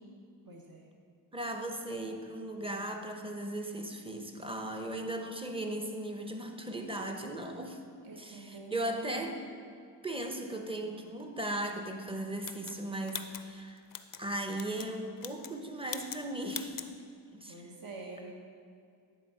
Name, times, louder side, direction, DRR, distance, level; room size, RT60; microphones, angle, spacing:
voice 1, 0.5-0.8 8.0-9.4 17.5-18.3, right 3 dB, 50° right, 0 dB, 1.2 m, -46 dB
voice 2, 1.3-7.8 8.1-9.4 10.0-13.8 14.2-16.8 17.3-17.6, right 1 dB, 10° right, 4 dB, 0.9 m, -37 dB
sound 1, 12.4-14.2 14.5-14.9 15.2-15.6 15.9-16.2 16.5-16.9, left 8 dB, 45° left, 0.5 m, -42 dB
10.0 x 3.7 x 4.9 m, 2.3 s
cardioid pair, 40°, 46 cm